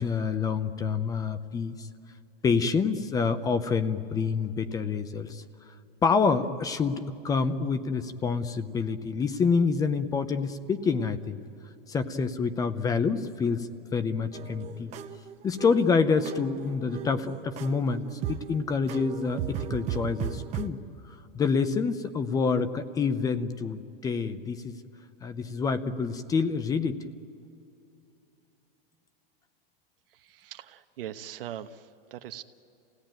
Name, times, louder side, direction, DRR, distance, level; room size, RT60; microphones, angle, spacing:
voice 1, 0.0-1.9 2.4-5.4 6.0-11.4 11.9-13.7 13.9-14.9 15.4-20.8 21.1-24.8 25.2-27.0, left 5 dB, 10° left, 12 dB, 0.7 m, -27 dB
sound 1, 14.3-20.7, right 10 dB, 25° right, 0.9 m, -37 dB
voice 2, 30.1-32.4, right 11 dB, 70° right, 8 dB, 1.2 m, -41 dB
27.5 x 17.5 x 9.0 m, 2.8 s
supercardioid pair, 150°, 29 cm